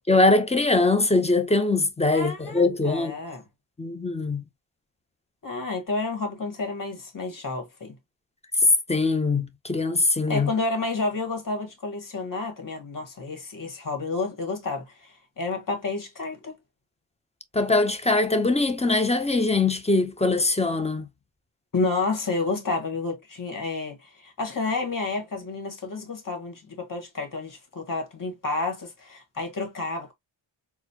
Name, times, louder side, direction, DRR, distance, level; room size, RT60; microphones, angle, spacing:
voice 1, 0.1-3.1 3.8-4.4 8.9-10.5 17.5-21.0, left 3 dB, 15° left, 0.6 m, -22 dB
voice 2, 2.1-3.4 5.4-8.0 10.3-16.6 21.7-30.1, left 3 dB, 40° left, 1.7 m, -30 dB
4.1 x 2.3 x 2.8 m
wide cardioid pair, 105°, 49 cm